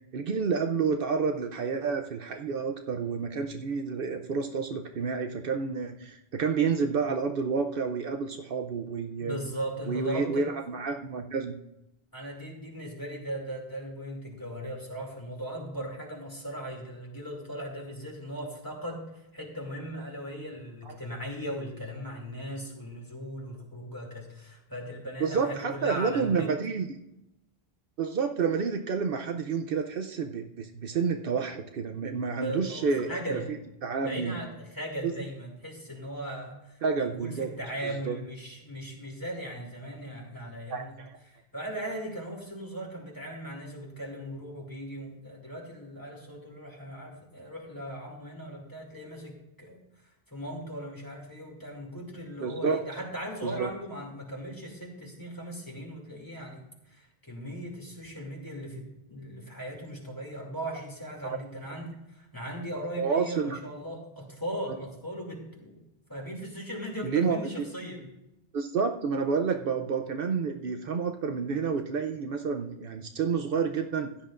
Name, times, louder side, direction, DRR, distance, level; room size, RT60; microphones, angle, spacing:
voice 1, 0.1-9.4 9.9-11.5 20.9-21.0 25.2-27.0 28.0-33.6 33.8-34.4 35.0-35.1 36.8-37.5 37.8-38.2 40.7-41.1 52.4-52.8 53.4-53.7 61.2-61.4 63.0-63.6 64.7-64.8 67.0-67.5 68.5-74.1, right 5 dB, 65° right, 5 dB, 0.8 m, -29 dB
voice 2, 9.2-10.5 12.1-26.5 32.4-33.5 34.0-41.0 41.3-49.8 50.3-68.1, equal, 20° left, -1 dB, 2.5 m, -38 dB
15.5 x 10.0 x 2.5 m, 0.89 s
omnidirectional pair, 1.0 m